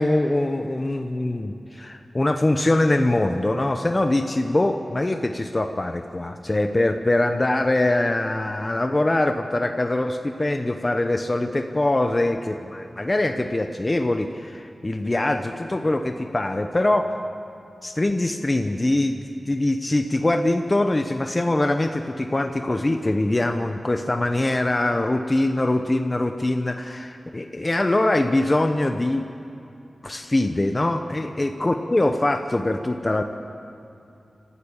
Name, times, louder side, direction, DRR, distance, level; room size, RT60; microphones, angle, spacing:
voice 1, 0.0-17.1 17.8-29.3 30.0-33.2, left 1 dB, 30° left, 6 dB, 0.9 m, -23 dB
30.0 x 13.0 x 7.2 m, 2.7 s
cardioid pair, 60°, 0 cm